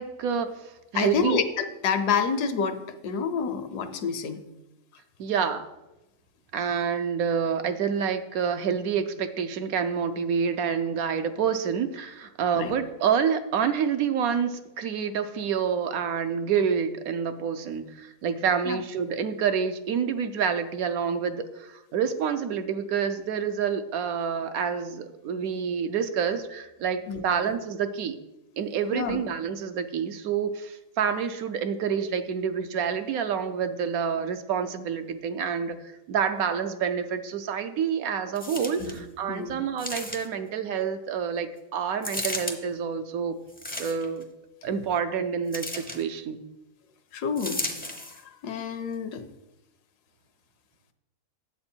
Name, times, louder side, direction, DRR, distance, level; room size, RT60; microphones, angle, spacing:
voice 1, 0.0-1.4 5.2-5.7 6.5-28.2 28.6-43.4 43.8-44.3 44.6-46.4, right 7 dB, 70° right, 9 dB, 1.0 m, -28 dB
voice 2, 0.9-4.4 12.5-12.7 18.7-18.8 27.1-27.5 28.9-29.2 38.8-39.0 39.3-39.6 47.1-47.7 48.4-49.2, left 6 dB, 80° left, 9 dB, 1.3 m, -28 dB
sound 1, 38.4-39.0 39.8-40.5 42.0-42.6 43.5-44.2 45.5-46.0 47.4-48.2 48.9-49.0, left 1 dB, 10° left, 0.4 m, -34 dB
8.7 x 7.7 x 4.4 m, 0.96 s
omnidirectional pair, 1.7 m